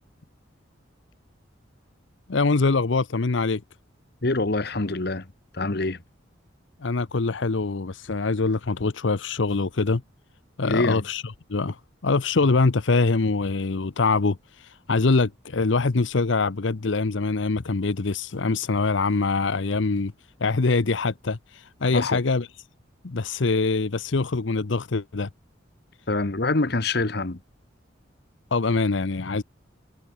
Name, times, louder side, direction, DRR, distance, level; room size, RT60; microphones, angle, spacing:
voice 1, 2.3-3.6 6.8-10.0 10.6-11.2 11.5-20.1 20.4-22.5 23.0-25.3 28.5-29.4, left 3 dB, 75° left, 0.8 m, -24 dB
voice 2, 4.2-5.3 5.5-6.0 10.6-11.0 21.9-22.2 26.1-27.4, left 2 dB, 55° left, 1.2 m, -25 dB
head